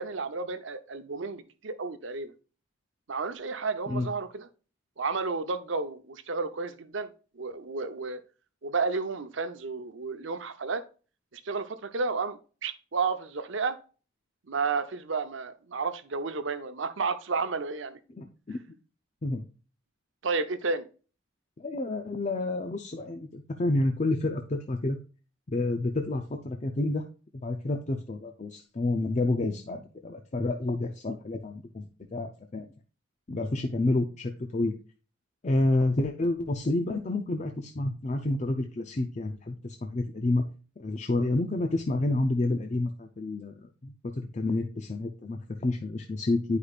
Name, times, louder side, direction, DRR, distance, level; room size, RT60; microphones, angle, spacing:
voice 1, 0.0-2.3 3.1-4.5 5.0-8.2 8.6-10.8 11.3-13.8 14.5-18.0 20.2-20.9, right 4 dB, 70° right, 0.7 m, -32 dB
voice 2, 18.2-18.6 19.2-19.4 21.6-25.0 25.5-27.0 27.4-32.7 33.3-34.7 35.4-40.4 40.8-46.6, left 2 dB, 35° left, 0.5 m, -29 dB
9.7 x 5.0 x 2.4 m
head